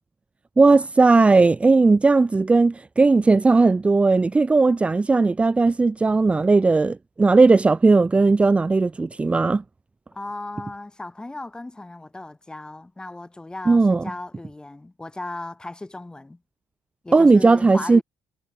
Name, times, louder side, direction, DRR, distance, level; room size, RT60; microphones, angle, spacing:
voice 1, 0.6-9.6 13.7-14.0 17.1-18.0, right 3 dB, 20° right, 0.9 m, -17 dB
voice 2, 10.1-16.4 17.0-18.0, left 2 dB, 15° left, 6.3 m, -36 dB
supercardioid pair, 85°, 6 cm